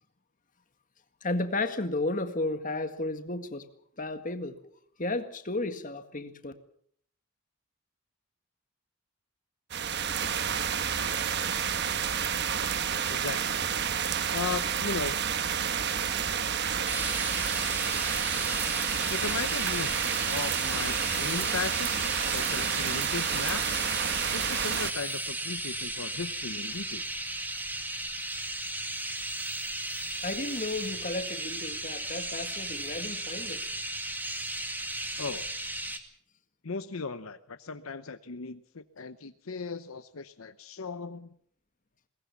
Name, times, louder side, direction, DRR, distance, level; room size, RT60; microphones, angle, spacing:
voice 1, 1.2-3.6 4.0-4.5 5.0-6.5 30.2-33.6, left 2 dB, 35° left, 1.8 m, -33 dB
sound 1, 9.7-24.9, right 7 dB, 50° right, 1.2 m, -30 dB
voice 2, 13.1-13.7 14.3-15.2 19.1-20.0 20.3-21.9 22.3-23.8 24.3-27.3 35.2-35.5 36.6-41.3, left 4 dB, 70° left, 0.9 m, -37 dB
sound 2, 16.9-36.0, right 1 dB, 10° right, 2.0 m, -35 dB
22.0 x 19.0 x 7.2 m
head